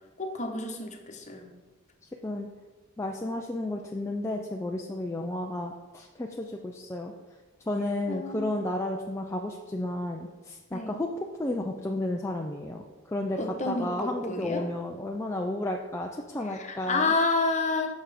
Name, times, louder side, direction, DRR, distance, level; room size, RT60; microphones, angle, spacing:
voice 1, 0.2-1.5 8.1-8.5 10.7-10.9 13.4-14.7 16.4-17.9, left 3 dB, 30° left, 4 dB, 1.0 m, -29 dB
voice 2, 3.0-7.1 7.7-11.1 11.4-13.4 13.7-17.1, left 1 dB, 15° left, 1 dB, 0.4 m, -32 dB
7.9 x 6.1 x 4.9 m, 1.3 s
head